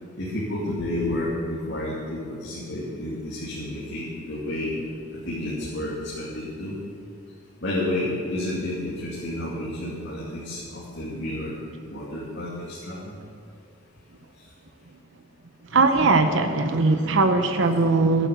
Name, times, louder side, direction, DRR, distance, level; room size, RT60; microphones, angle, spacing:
voice 1, 0.2-4.7 5.1-6.8 7.6-11.6 11.9-13.1 17.6-17.7, left 1 dB, 55° left, -7 dB, 2.5 m, -30 dB
voice 2, 15.7-18.3, right 3 dB, 60° right, 6 dB, 0.8 m, -20 dB
13.5 x 9.1 x 6.7 m, 2.3 s
head